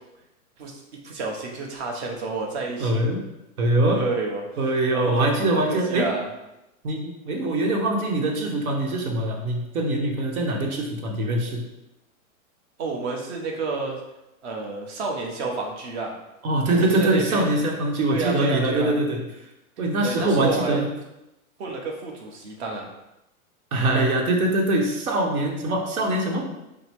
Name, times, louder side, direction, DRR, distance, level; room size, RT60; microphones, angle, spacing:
voice 1, 1.0-3.0 3.9-4.4 4.9-6.3 7.7-7.8 12.8-14.0 14.4-16.2 16.7-17.5 18.1-19.0 20.0-20.8 21.6-22.9, right 3 dB, 50° right, 0 dB, 1.1 m, -30 dB
voice 2, 2.8-3.2 3.6-4.1 4.6-6.1 6.8-11.6 16.4-19.2 19.8-20.9 23.7-26.4, right 1 dB, 80° right, 1 dB, 1.2 m, -23 dB
5.8 x 2.1 x 3.5 m, 0.91 s
hypercardioid pair, 145°, 42 cm